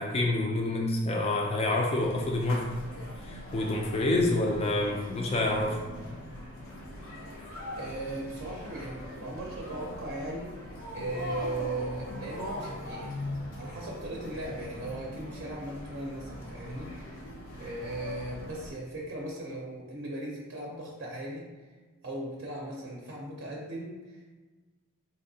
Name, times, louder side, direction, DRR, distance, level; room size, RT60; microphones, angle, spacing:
voice 1, 0.0-2.7 3.2-5.8, left 2 dB, 30° left, 0 dB, 0.4 m, -27 dB
sound 1, 2.0-18.7, left 1 dB, 65° left, 0.8 m, -41 dB
voice 2, 7.4-13.2 13.5-17.2 17.6-21.5 22.0-24.3, right 1 dB, 55° right, -3 dB, 0.6 m, -38 dB
4.2 x 2.8 x 2.7 m, 1.3 s
head